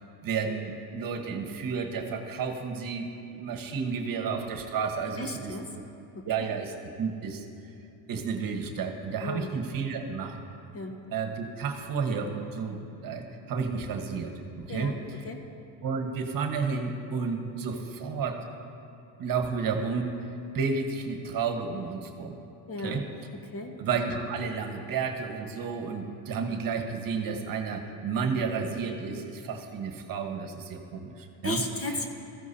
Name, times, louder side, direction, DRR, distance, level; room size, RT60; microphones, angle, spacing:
voice 1, 0.2-3.1 3.4-5.5 6.2-7.4 8.1-10.4 11.1-14.9 15.8-18.4 19.2-20.1 20.5-22.4 22.8-23.0 23.8-31.6, right 5 dB, 45° right, 4 dB, 1.4 m, -31 dB
voice 2, 5.2-5.7 6.1-6.5 9.2-9.5 10.7-11.0 14.7-15.4 22.7-23.0 23.4-23.7 31.4-32.1, left 2 dB, 30° left, 3 dB, 1.4 m, -35 dB
17.5 x 14.5 x 2.8 m, 2.8 s
supercardioid pair, 85°, 46 cm